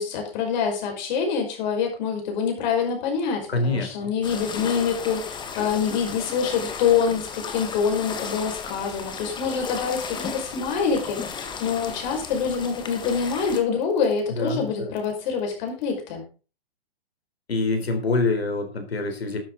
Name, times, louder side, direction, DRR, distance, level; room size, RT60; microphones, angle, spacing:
voice 1, 0.0-16.2, left 6 dB, 45° left, 3 dB, 5.5 m, -26 dB
voice 2, 3.5-4.1 14.4-14.9 17.5-19.4, left 3 dB, 85° left, 6 dB, 3.9 m, -25 dB
sound 1, 4.2-13.6, left 6 dB, 15° left, 1.6 m, -35 dB
12.0 x 10.0 x 3.9 m, 0.34 s
hypercardioid pair, 130°, 30 cm